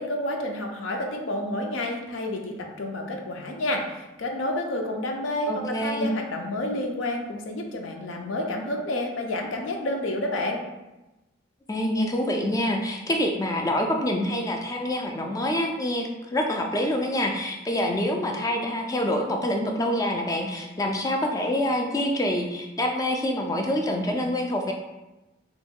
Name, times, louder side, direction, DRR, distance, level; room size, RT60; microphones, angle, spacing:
voice 1, 0.0-10.6, left 1 dB, 75° left, 2 dB, 0.5 m, -29 dB
voice 2, 5.5-6.1 11.7-24.7, left 1 dB, 15° left, 2 dB, 0.3 m, -26 dB
2.9 x 2.6 x 3.6 m, 1.0 s
head